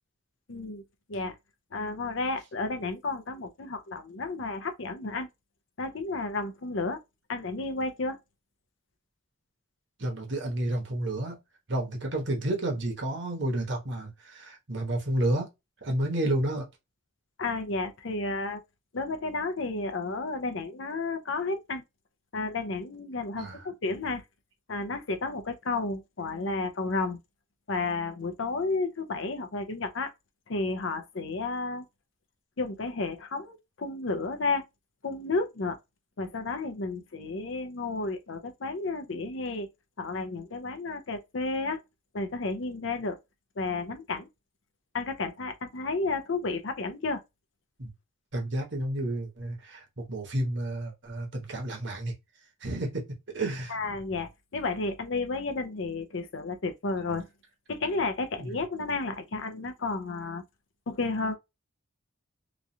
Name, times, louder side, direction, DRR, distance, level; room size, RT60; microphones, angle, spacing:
voice 1, 0.5-0.8 1.1-1.3 1.7-5.3 5.8-7.0 7.3-8.2 17.4-18.6 18.9-21.8 22.3-24.2 24.7-27.2 27.7-30.1 30.5-31.8 32.6-34.6 35.0-35.8 36.2-39.7 40.0-41.8 42.1-43.2 43.6-44.3 44.9-47.2 53.7-57.3 57.7-60.4 60.9-61.4, left 3 dB, 65° left, 0.6 m, -32 dB
voice 2, 10.0-11.4 11.7-15.5 15.8-16.7 23.4-23.6 47.8-47.9 48.3-52.1 52.6-53.0 53.3-53.8 58.4-58.5, right 1 dB, 55° right, 1.0 m, -31 dB
3.0 x 2.4 x 2.6 m
head